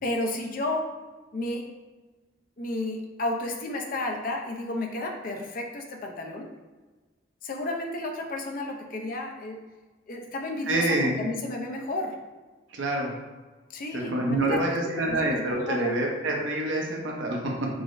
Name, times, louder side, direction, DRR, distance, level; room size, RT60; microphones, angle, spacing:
voice 1, 0.0-0.9 1.3-1.7 2.6-6.5 7.4-9.6 10.1-12.2 13.7-14.8 15.1-15.9, left 2 dB, 50° left, 2 dB, 0.4 m, -32 dB
voice 2, 10.7-11.1 12.7-13.1 13.9-17.7, right 1 dB, 85° right, 0 dB, 0.7 m, -27 dB
4.7 x 2.0 x 2.5 m, 1.3 s
head